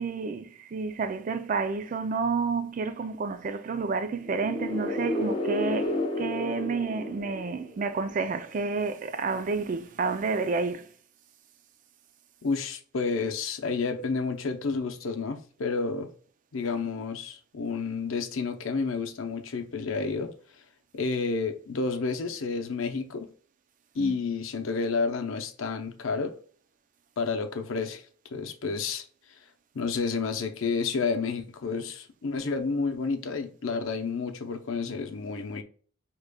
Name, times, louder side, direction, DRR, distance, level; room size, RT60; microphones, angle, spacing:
voice 1, 0.0-10.9 24.0-24.2, right 4 dB, 40° right, 0.3 m, -30 dB
sound 1, 4.2-8.0, left 1 dB, 25° left, 0.5 m, -31 dB
voice 2, 12.4-16.1 16.5-20.3 20.9-23.3 23.9-26.3 27.2-28.0 28.3-29.1 29.7-35.6, left 4 dB, 80° left, 0.6 m, -30 dB
4.9 x 3.0 x 2.2 m
head